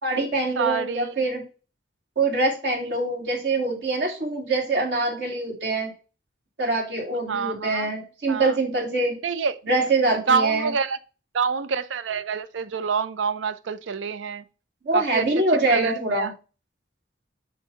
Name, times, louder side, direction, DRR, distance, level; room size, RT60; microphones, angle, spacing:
voice 1, 0.0-1.4 2.2-5.9 6.6-9.2 9.7-10.7 14.8-16.3, right 2 dB, 65° right, 2.4 m, -24 dB
voice 2, 0.6-1.1 7.3-7.9 8.3-8.5 9.2-9.6 10.1-11.0 11.3-14.4 14.9-15.3 15.7-16.3, right 5 dB, 85° right, 0.5 m, -26 dB
7.3 x 2.7 x 5.5 m
head